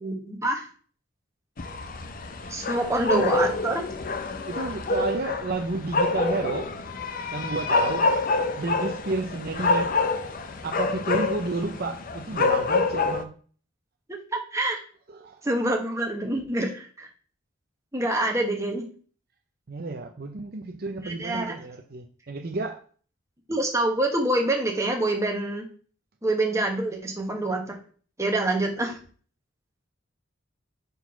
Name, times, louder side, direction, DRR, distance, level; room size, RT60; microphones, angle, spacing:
voice 1, 0.0-0.7 2.5-3.8 14.1-14.8 15.4-17.1 17.9-18.8 21.0-21.5 23.5-25.6 26.2-27.8 28.2-29.0, right 1 dB, 15° right, 1.1 m, -26 dB
sound 1, 1.6-13.2, left 3 dB, 45° left, 0.6 m, -27 dB
voice 2, 3.1-3.4 4.5-6.7 7.3-8.1 8.6-10.0 10.6-13.3 15.1-15.5 19.7-22.8, right 3 dB, 50° right, 0.6 m, -31 dB
4.7 x 3.9 x 5.7 m
head